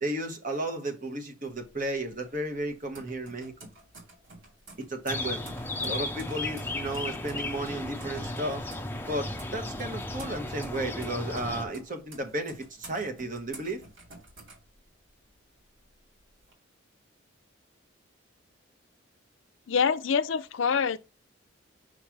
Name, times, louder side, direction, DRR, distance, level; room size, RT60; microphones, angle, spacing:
voice 1, 0.0-3.5 4.9-5.4 5.8-8.7 9.1-13.8, right 1 dB, 40° right, 1.2 m, -33 dB
sound 1, 1.5-15.3 15.7-16.5, right 2 dB, 70° right, 2.6 m, -51 dB
sound 2, 5.1-11.6, left 2 dB, 10° left, 0.6 m, -35 dB
voice 2, 19.7-21.0, left 6 dB, 70° left, 0.5 m, -25 dB
6.2 x 3.2 x 5.9 m
head